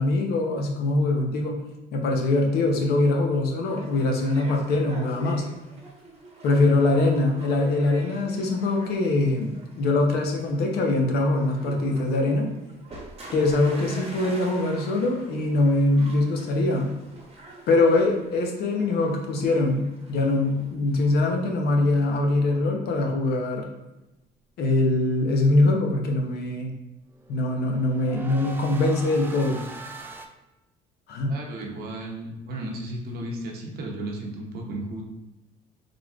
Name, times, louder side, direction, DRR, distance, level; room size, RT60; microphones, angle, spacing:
voice 1, 0.0-1.6 1.9-5.5 6.4-12.5 13.3-16.9 17.7-23.6 24.6-26.7 27.3-29.6 31.1-31.3, left 2 dB, 70° left, 1 dB, 0.8 m, -23 dB
sound 1, 3.7-21.8, right 2 dB, 35° right, 0.9 m, -45 dB
sound 2, 22.5-23.4 27.1-30.3, right 3 dB, 10° right, 0.3 m, -42 dB
voice 2, 31.3-35.0, right 1 dB, 70° right, 0 dB, 0.8 m, -34 dB
3.9 x 3.2 x 2.4 m, 0.97 s
cardioid pair, 110°, 17 cm